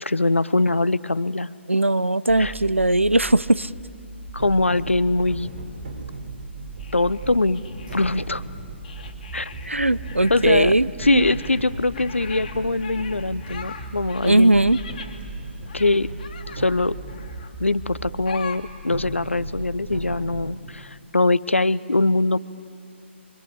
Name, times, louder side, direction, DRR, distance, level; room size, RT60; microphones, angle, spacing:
voice 1, 0.0-1.5 2.4-2.5 4.3-5.5 6.9-7.6 7.9-8.4 9.3-9.5 10.3-10.7 11.0-14.6 15.7-16.1 16.6-16.9 17.6-22.4, left 2 dB, 80° left, 17 dB, 0.7 m, -22 dB
voice 2, 1.7-3.7 9.6-11.3 14.2-14.8, right 1 dB, 90° right, 16 dB, 0.6 m, -19 dB
sound 1, 2.3-18.3, right 5 dB, 10° right, 2.2 m, -39 dB
sound 2, 4.3-17.3 17.8-20.4, right 1 dB, 50° right, 6.5 m, -38 dB
sound 3, 6.8-8.3 8.8-10.7 11.0-15.2 15.7-16.7 17.1-17.6 18.3-18.6, left 6 dB, 40° left, 2.4 m, -41 dB
27.5 x 24.0 x 8.4 m, 2.5 s
figure-of-eight pair, 135°, 7 cm